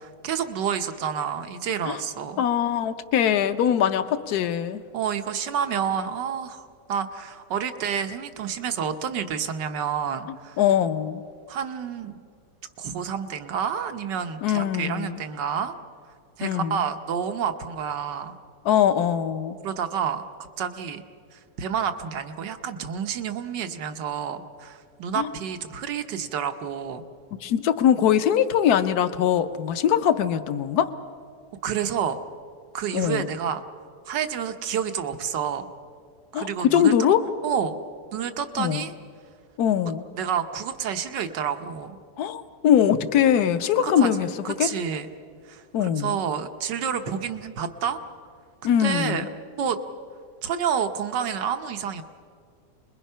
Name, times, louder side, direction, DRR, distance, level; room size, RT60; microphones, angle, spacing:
voice 1, 0.0-2.4 4.9-10.6 11.5-12.2 12.8-15.7 16.4-18.3 19.6-20.2 20.6-21.0 21.3-27.0 31.6-32.2 32.7-33.6 34.0-35.7 36.3-36.9 37.4-37.8 38.1-38.9 40.1-42.0 43.8-44.1 44.4-45.1 45.5-48.0 48.7-49.3 49.6-49.8 50.4-52.0, right 7 dB, 90° right, 8 dB, 1.7 m, -29 dB
voice 2, 2.4-4.8 10.6-11.2 14.4-15.2 16.4-16.9 18.6-19.6 25.1-25.3 27.4-30.9 32.9-33.3 36.3-37.3 38.6-38.8 39.6-40.1 42.2-44.3 44.6-44.7 45.7-46.1 48.6-49.3, left 9 dB, 65° left, 10 dB, 1.4 m, -22 dB
29.5 x 21.5 x 5.6 m, 2.2 s
omnidirectional pair, 1.8 m